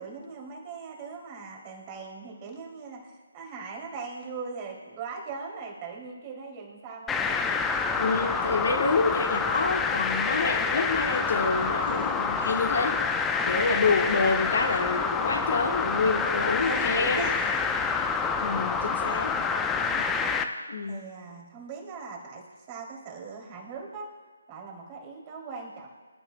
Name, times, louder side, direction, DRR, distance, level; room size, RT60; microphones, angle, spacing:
voice 1, 0.0-8.1 16.3-17.7 19.8-20.1 20.9-24.1 24.5-25.9, right 4 dB, 25° right, -1 dB, 2.8 m, -40 dB
sound 1, 7.1-20.4, left 5 dB, 10° left, 0.7 m, -27 dB
voice 2, 8.0-13.0 13.5-17.3 18.4-19.3 20.3-21.0, left 4 dB, 50° left, 3 dB, 1.3 m, -27 dB
25.5 x 12.0 x 2.2 m, 1.4 s
figure-of-eight pair, 145°, 0 cm